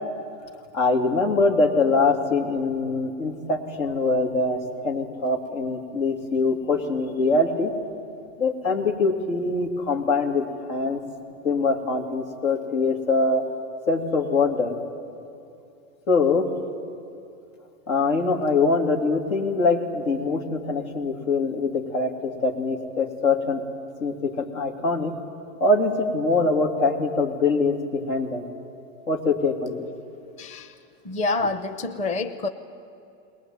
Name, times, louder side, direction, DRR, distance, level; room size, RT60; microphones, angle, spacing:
voice 1, 0.7-7.7 8.4-11.0 11.4-13.4 13.9-14.8 16.1-16.5 17.9-23.6 24.0-25.1 25.6-28.5 29.1-29.9, left 3 dB, 85° left, 2 dB, 3.1 m, -23 dB
voice 2, 30.4-30.8 31.0-32.5, left 3 dB, 20° left, 9 dB, 0.8 m, -27 dB
21.0 x 19.0 x 9.3 m, 2.6 s
supercardioid pair, 135°, 40 cm